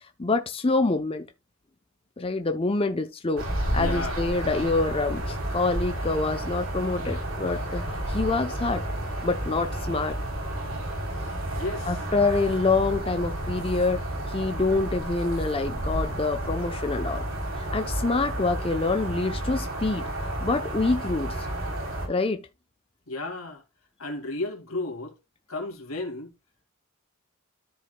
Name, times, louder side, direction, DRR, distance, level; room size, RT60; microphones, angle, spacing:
voice 1, 0.2-1.3 2.2-3.5 3.7-8.8 9.2-10.2 11.9-17.2 17.6-20.0 20.4-21.5 22.1-22.5, left 3 dB, 25° left, 0.7 m, -26 dB
sound 1, 3.4-22.1, right 1 dB, 70° right, 3.4 m, -31 dB
voice 2, 3.8-4.3 11.1-12.0 23.1-23.6 24.0-25.1 25.5-26.3, left 2 dB, 85° left, 2.5 m, -34 dB
13.0 x 4.8 x 2.2 m
head